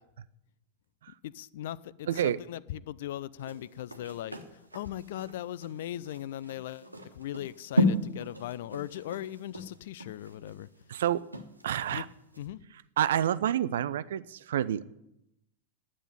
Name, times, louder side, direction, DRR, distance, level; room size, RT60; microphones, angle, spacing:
voice 1, 1.2-10.7 11.9-12.0 12.4-12.6, left 12 dB, 55° left, 0.5 m, -39 dB
voice 2, 2.1-2.4 10.9-11.3 11.6-12.1 13.0-14.8, right 10 dB, 60° right, 0.5 m, -28 dB
sound 1, 3.4-11.9 12.3-12.5, left 1 dB, 85° right, 1.2 m, -33 dB
10.0 x 8.6 x 9.2 m
figure-of-eight pair, 90°, 0 cm